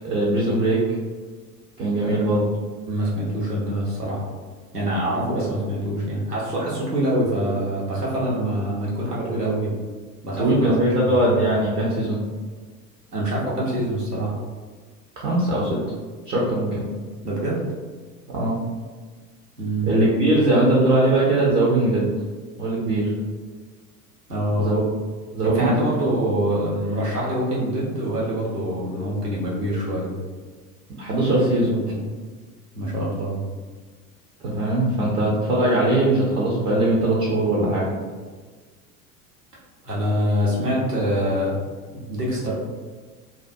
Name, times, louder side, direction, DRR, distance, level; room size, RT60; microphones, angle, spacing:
voice 1, 0.0-0.8 1.8-2.4 5.2-5.3 10.4-12.2 15.2-15.8 16.3-16.8 18.3-18.6 19.9-22.1 22.6-23.1 24.6-24.8 25.3-25.9 31.0-31.8 34.4-37.9, right 1 dB, 25° right, -5 dB, 0.3 m, -20 dB
voice 2, 2.9-4.2 4.7-9.7 10.2-10.7 11.0-11.3 13.1-14.3 17.2-17.6 19.6-19.9 24.3-24.7 25.4-30.1 31.9-32.0 32.7-33.4 39.8-41.5 41.9-42.6, right 1 dB, 90° right, -5 dB, 0.8 m, -25 dB
2.3 x 2.1 x 2.6 m, 1.4 s
figure-of-eight pair, 80°, 46 cm